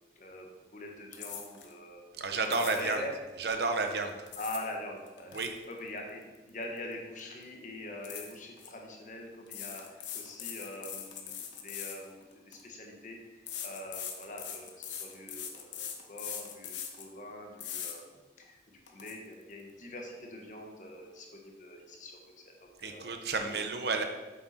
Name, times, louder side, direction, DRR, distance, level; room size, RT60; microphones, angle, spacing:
voice 1, 0.1-2.0 2.8-3.1 4.4-5.4 5.7-22.2 22.6-23.1 23.4-23.6, left 1 dB, 45° left, 1 dB, 1.4 m, -44 dB
sound 1, 1.1-1.7 2.5-3.0 4.0-4.7 5.1-6.9 7.2-7.4 8.0-8.7 9.5-12.6 13.5-17.1 17.6-18.0 18.4-18.5 18.9-19.1, left 8 dB, 85° left, 1.2 m, -41 dB
voice 2, 2.2-3.0 3.4-4.1 5.3-5.5 22.8-24.0, right 3 dB, 65° right, 5 dB, 1.0 m, -31 dB
8.5 x 7.9 x 4.3 m, 1.2 s
head